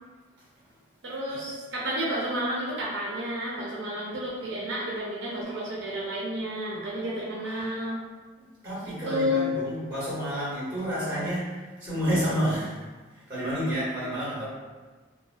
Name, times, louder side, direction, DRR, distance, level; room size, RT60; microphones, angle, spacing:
voice 1, 1.0-8.0 9.0-9.5, equal, 70° right, -6 dB, 0.5 m, -31 dB
voice 2, 5.3-6.0 7.4-7.7 8.4-12.8 13.1-14.4, equal, 20° right, -9 dB, 1.2 m, -30 dB
2.4 x 2.1 x 2.4 m, 1.4 s
head